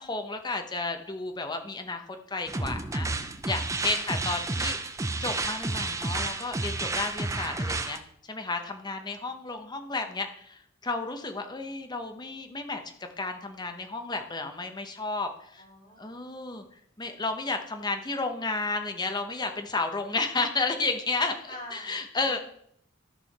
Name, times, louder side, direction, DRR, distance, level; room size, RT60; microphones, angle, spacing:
voice 1, 0.0-2.0 2.3-3.1 3.5-4.8 5.2-8.0 8.3-15.6 16.0-16.6 17.0-22.4, left 3 dB, 20° left, 5 dB, 0.9 m, -32 dB
sound 1, 2.5-8.0, right 3 dB, 15° right, 0.5 m, -31 dB
voice 2, 8.9-9.3 15.6-16.3 21.5-21.9 22.2-22.4, equal, 40° left, -3 dB, 3.5 m, -46 dB
13.0 x 5.6 x 4.2 m, 0.68 s
head